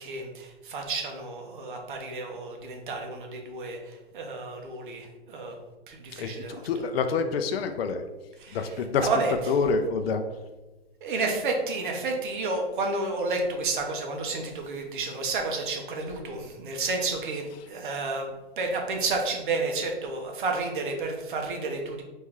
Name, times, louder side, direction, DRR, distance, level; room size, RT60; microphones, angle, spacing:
voice 1, 0.0-5.6 5.9-6.6 8.4-8.7 9.0-9.3 11.0-22.0, right 3 dB, 50° right, 2 dB, 0.9 m, -31 dB
voice 2, 6.2-8.0 8.5-10.2 17.5-17.7, left 5 dB, 60° left, 7 dB, 0.5 m, -27 dB
4.2 x 3.1 x 3.6 m, 1.1 s
hypercardioid pair, 155°, 33 cm